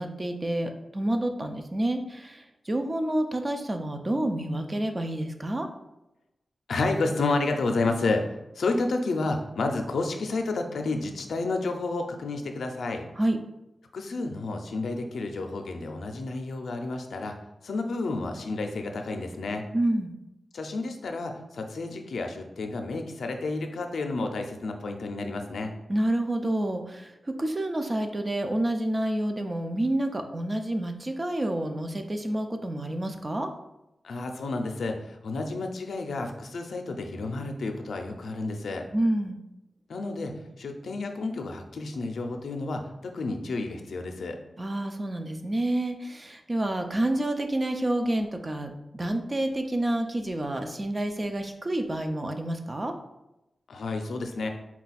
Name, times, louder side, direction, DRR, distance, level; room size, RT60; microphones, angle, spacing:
voice 1, 0.0-5.7 13.2-13.4 19.7-20.1 25.9-33.5 38.9-39.4 44.6-52.9, right 1 dB, 25° right, 6 dB, 0.4 m, -28 dB
voice 2, 6.7-13.1 13.9-17.3 17.6-19.6 20.5-25.7 34.0-38.9 39.9-44.4 53.7-54.5, left 3 dB, 90° left, 4 dB, 0.5 m, -30 dB
4.2 x 2.3 x 4.0 m, 0.91 s
wide cardioid pair, 135°, 0 cm